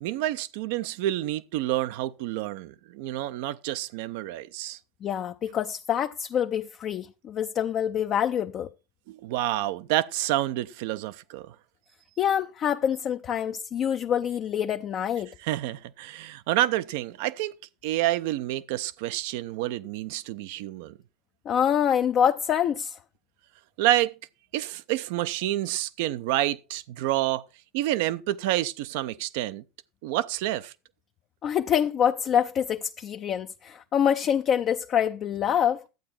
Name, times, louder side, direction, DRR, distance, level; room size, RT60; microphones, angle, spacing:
voice 1, 0.0-4.8 9.1-11.5 15.4-17.5 17.8-21.0 23.8-24.1 24.5-27.4 27.7-29.6 30.0-30.7, right 15 dB, 65° right, 0.6 m, -28 dB
voice 2, 5.0-8.7 12.2-15.3 21.5-23.0 31.4-35.8, left 9 dB, 40° left, 0.6 m, -26 dB
12.0 x 8.5 x 4.4 m
hypercardioid pair, 80°, 0 cm